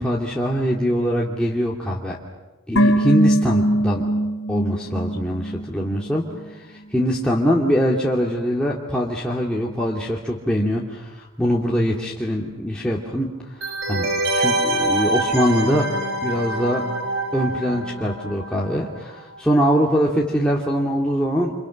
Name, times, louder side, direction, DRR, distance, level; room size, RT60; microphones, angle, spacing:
voice 1, 0.0-2.2 2.7-4.1 4.5-15.9 16.2-16.8 17.3-21.5, equal, 5° left, -5 dB, 2.4 m, -23 dB
sound 1, 2.8-6.1 6.3-6.4, right 1 dB, 80° left, 3.2 m, -21 dB
sound 2, 13.6-19.1 19.3-19.4, right 1 dB, 55° right, 3.3 m, -25 dB
30.0 x 28.5 x 6.4 m, 1.2 s
head